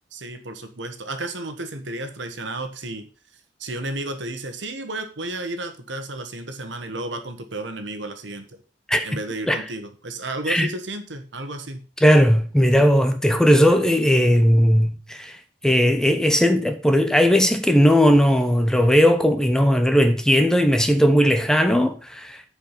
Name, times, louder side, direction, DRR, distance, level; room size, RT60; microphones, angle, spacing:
voice 1, 0.1-3.1 3.6-8.5 9.0-11.8, right 2 dB, 85° right, 1.4 m, -32 dB
voice 2, 12.0-15.4 15.6-22.4, equal, 5° left, 0.8 m, -17 dB
9.0 x 5.0 x 5.6 m
head